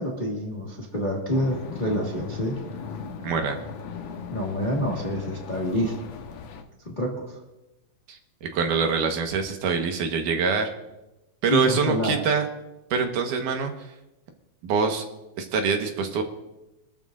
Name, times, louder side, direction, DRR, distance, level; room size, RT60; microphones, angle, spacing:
voice 1, 0.0-2.6 4.3-6.0 6.8-7.3 11.5-12.2, equal, 20° left, -2 dB, 1.4 m, -27 dB
sound 1, 1.3-6.6, left 6 dB, 65° left, 2.0 m, -38 dB
voice 2, 3.2-3.6 8.1-10.7 11.4-12.5 12.9-13.7 14.6-15.0 15.4-16.2, right 5 dB, 85° right, 4 dB, 2.9 m, -24 dB
25.5 x 13.0 x 2.6 m, 0.96 s
omnidirectional pair, 3.6 m